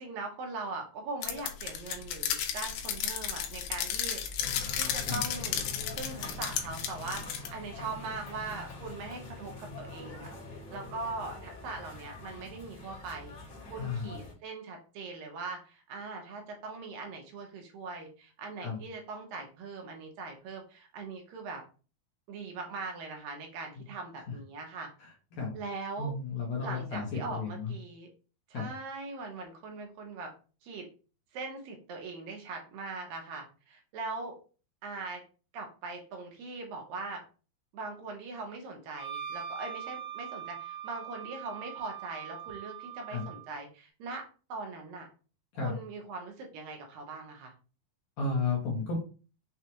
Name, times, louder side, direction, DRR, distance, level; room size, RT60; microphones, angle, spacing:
voice 1, 0.0-4.2 4.8-5.7 6.0-13.3 13.7-21.6 22.3-24.9 25.5-26.1 26.6-28.1 28.5-30.3 30.6-30.9 31.3-34.4 34.8-35.2 35.5-37.2 37.7-44.2 44.5-45.1 45.5-47.5, right 3 dB, 75° right, 2 dB, 2.4 m, -41 dB
sound 1, 1.2-7.5, left 9 dB, 85° left, 2.6 m, -34 dB
sound 2, 4.4-14.3, left 3 dB, 45° left, 1.4 m, -44 dB
voice 2, 13.8-14.1 18.6-18.8 23.8-23.9 25.0-25.5 26.0-27.7 28.5-28.7 43.1-43.2 45.5-45.8 48.2-49.0, left 4 dB, 65° left, -2 dB, 2.0 m, -33 dB
Wind instrument woodwind instrument, 39.0-43.5, right 9 dB, 55° right, 1.9 m, -42 dB
6.2 x 2.4 x 2.9 m, 0.35 s
omnidirectional pair, 4.4 m